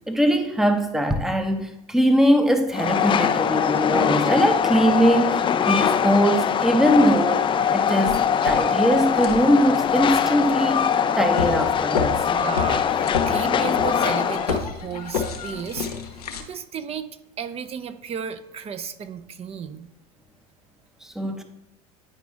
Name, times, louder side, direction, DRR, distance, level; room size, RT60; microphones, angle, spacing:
voice 1, 0.1-12.2 21.0-21.4, equal, ahead, 0.8 m, -21 dB
Train, 2.7-14.6, left 8 dB, 25° left, 0.5 m, -22 dB
sound 1, 7.2-7.3 7.8-16.4, left 5 dB, 85° left, 1.0 m, -31 dB
voice 2, 12.3-15.9 16.5-17.1 17.4-19.9, right 7 dB, 30° right, 0.8 m, -33 dB
10.0 x 5.0 x 3.5 m
hypercardioid pair, 85°, 19 cm